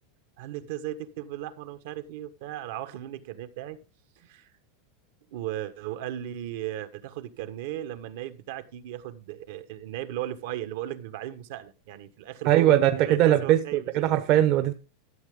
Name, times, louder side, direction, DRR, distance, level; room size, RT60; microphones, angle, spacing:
voice 1, 0.4-3.8 4.2-4.5 5.3-13.9, right 12 dB, 60° right, 1.4 m, -36 dB
voice 2, 12.4-14.7, right 12 dB, 40° right, 1.0 m, -21 dB
13.0 x 7.9 x 3.7 m
supercardioid pair, 165°, 0 cm